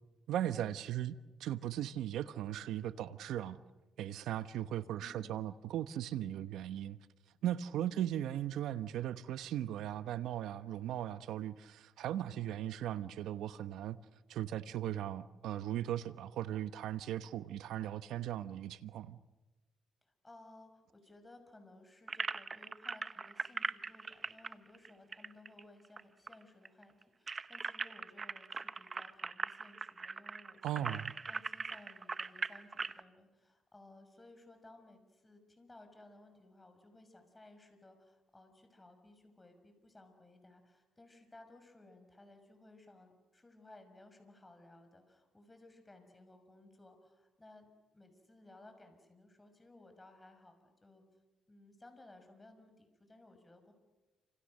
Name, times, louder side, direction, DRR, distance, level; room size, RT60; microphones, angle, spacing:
voice 1, 0.3-3.6 4.0-7.0 7.4-14.0 14.3-19.2 30.6-31.1, right 11 dB, 80° right, 1.1 m, -38 dB
voice 2, 5.0-5.5 20.0-30.9 31.3-51.0 51.5-53.7, left 2 dB, 15° left, 6.0 m, -59 dB
sound 1, 22.1-26.0 26.3-26.4 26.7-33.0, right 4 dB, 30° right, 0.9 m, -40 dB
29.0 x 27.0 x 6.7 m
cardioid pair, 90°, 0 cm